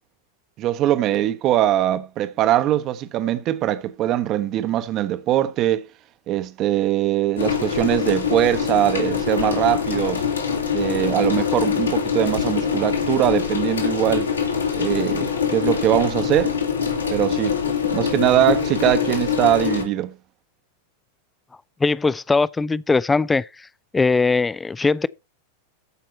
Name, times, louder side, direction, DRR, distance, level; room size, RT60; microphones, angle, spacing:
voice 1, 0.6-5.9 6.3-10.2 10.7-14.3 14.8-16.5 17.1-17.6 17.9-20.1, right 12 dB, 35° right, 1.0 m, -21 dB
sound 1, 7.4-19.8, left 7 dB, 70° left, 2.6 m, -24 dB
voice 2, 21.8-23.5 23.9-25.1, left 4 dB, 10° left, 0.4 m, -20 dB
14.0 x 5.6 x 4.3 m
figure-of-eight pair, 90°, 0 cm